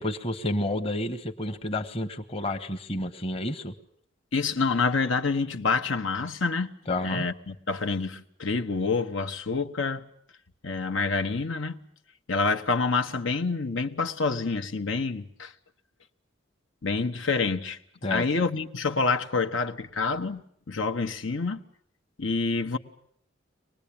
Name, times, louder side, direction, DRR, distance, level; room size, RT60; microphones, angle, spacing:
voice 1, 0.0-3.7 6.9-7.3 18.0-18.3, left 1 dB, 30° left, 1.1 m, -30 dB
voice 2, 4.3-6.7 7.0-10.0 10.6-11.8 12.3-15.5 16.8-17.8 18.1-21.6 22.2-22.8, left 4 dB, 75° left, 1.1 m, -27 dB
24.5 x 19.5 x 8.7 m
head